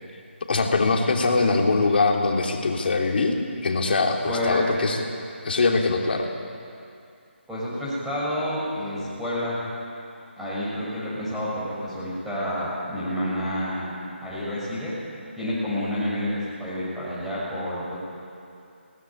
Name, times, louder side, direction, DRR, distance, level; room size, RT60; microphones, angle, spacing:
voice 1, 0.5-3.3 3.6-5.0 5.4-6.3, left 3 dB, 55° left, 1 dB, 3.2 m, -22 dB
voice 2, 4.2-4.6 7.5-9.6 10.4-13.9 14.2-14.9 15.4-16.3 16.6-18.0, left 1 dB, 5° right, -9 dB, 6.0 m, -29 dB
22.0 x 18.5 x 8.7 m, 2.5 s
figure-of-eight pair, 160°, 7 cm